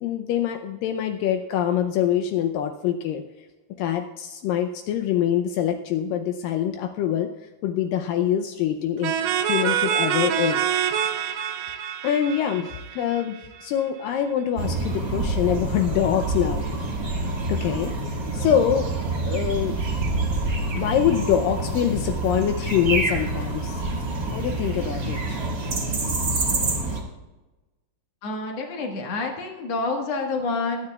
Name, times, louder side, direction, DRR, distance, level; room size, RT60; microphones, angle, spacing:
voice 1, 0.0-3.5 3.8-10.6 12.0-16.6 17.5-18.9 19.3-19.8 20.7-25.4, left 9 dB, 85° left, 5 dB, 2.0 m, -25 dB
sound 1, 9.0-13.6, right 9 dB, 85° right, 1.8 m, -26 dB
sound 2, 14.6-27.0, right 2 dB, 70° right, 0.8 m, -27 dB
voice 2, 28.2-30.9, left 3 dB, 55° left, 1 dB, 2.0 m, -28 dB
22.0 x 9.7 x 2.3 m, 1.1 s
omnidirectional pair, 4.6 m